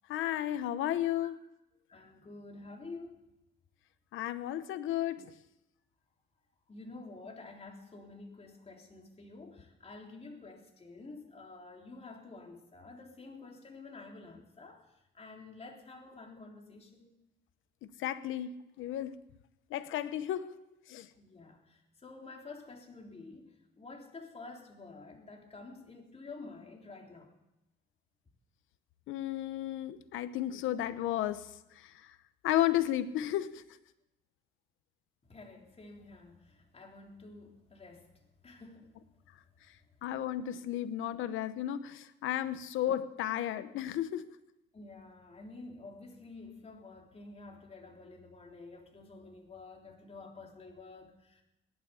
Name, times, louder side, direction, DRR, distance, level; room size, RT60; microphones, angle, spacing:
voice 1, 0.1-1.4 4.1-5.3 18.0-19.2 19.7-20.6 20.9-21.1 29.1-31.5 32.4-33.6 40.0-44.3, left 12 dB, 90° left, 0.9 m, -33 dB
voice 2, 1.9-3.2 6.7-14.9 15.1-17.1 21.2-27.3 35.3-38.1 38.4-38.9 44.7-51.4, left 3 dB, 30° left, 3.6 m, -49 dB
17.5 x 11.5 x 7.0 m
cardioid pair, 90°, 20 cm